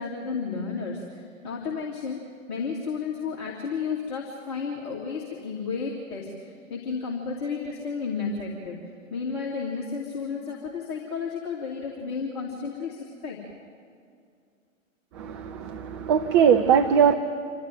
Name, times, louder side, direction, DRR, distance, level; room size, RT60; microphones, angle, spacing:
voice 1, 0.0-2.2 2.5-8.8 9.1-13.4, left 5 dB, 35° left, -4 dB, 2.8 m, -32 dB
voice 2, 15.2-17.1, right 8 dB, 20° right, 6 dB, 0.6 m, -20 dB
27.5 x 13.5 x 9.4 m, 2.3 s
figure-of-eight pair, 120°, 41 cm